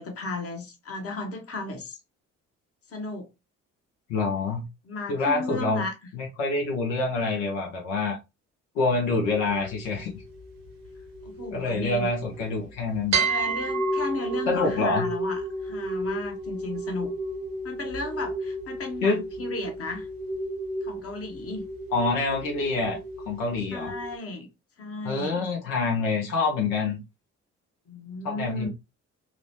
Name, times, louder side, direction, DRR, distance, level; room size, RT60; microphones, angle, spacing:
voice 1, 0.0-2.0 2.9-3.3 4.8-5.9 11.2-12.1 13.2-17.1 17.6-20.1 20.8-21.6 23.7-24.5 24.8-25.4 27.9-28.7, left 2 dB, 35° left, 0.9 m, -35 dB
voice 2, 4.1-4.7 5.1-5.8 6.1-8.2 8.7-10.2 11.5-13.2 14.5-15.1 19.0-19.2 21.9-23.0 23.3-23.9 25.0-27.0 28.2-28.7, left 3 dB, 80° left, 0.7 m, -26 dB
sound 1, 9.2-12.6 13.1-24.2, right 2 dB, 60° right, 0.9 m, -32 dB
3.0 x 2.1 x 2.6 m
hypercardioid pair, 45°, 38 cm